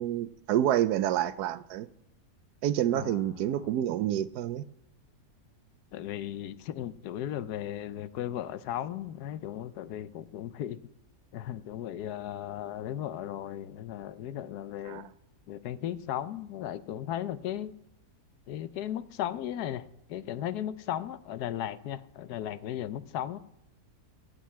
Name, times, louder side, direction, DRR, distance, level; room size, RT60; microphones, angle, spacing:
voice 1, 0.0-1.9 2.6-4.6 14.9-15.0, right 11 dB, 85° right, 1.2 m, -28 dB
voice 2, 2.9-3.7 5.9-10.8 11.3-15.1 15.5-17.7 18.5-23.4, left 11 dB, 80° left, 1.2 m, -36 dB
16.5 x 5.5 x 8.3 m
omnidirectional pair, 1.7 m